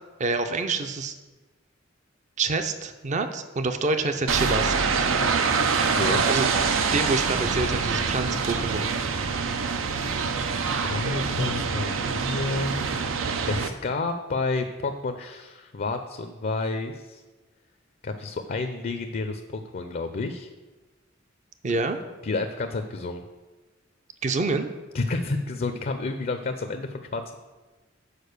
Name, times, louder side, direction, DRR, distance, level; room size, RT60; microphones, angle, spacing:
voice 1, 0.2-1.1 2.4-4.7 6.3-6.5 6.9-8.9 21.6-22.0 24.2-24.7, right 3 dB, 40° right, 9 dB, 0.5 m, -27 dB
sound 1, 4.3-13.7, right 5 dB, 85° right, 0.6 m, -25 dB
voice 2, 5.9-6.3 7.9-8.4 10.6-12.8 13.5-17.2 18.0-20.5 22.2-23.2 24.9-27.4, left 3 dB, 45° left, 7 dB, 0.5 m, -30 dB
6.7 x 5.0 x 6.5 m, 1.2 s
head